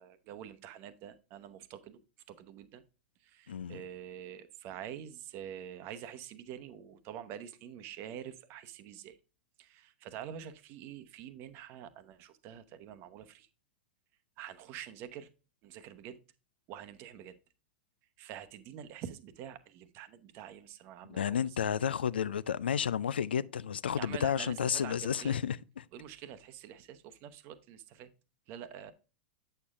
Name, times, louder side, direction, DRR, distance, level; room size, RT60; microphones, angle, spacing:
voice 1, 0.0-2.0 2.3-2.8 3.2-9.2 9.6-13.5 14.4-15.3 15.6-16.2 16.7-17.3 18.2-21.8 24.0-25.4 25.9-28.1 28.5-28.9, right 9 dB, 45° right, 0.9 m, -46 dB
voice 2, 3.5-3.8 21.1-25.8, left 8 dB, 75° left, 0.4 m, -32 dB
8.3 x 6.6 x 2.4 m
figure-of-eight pair, 95°, 5 cm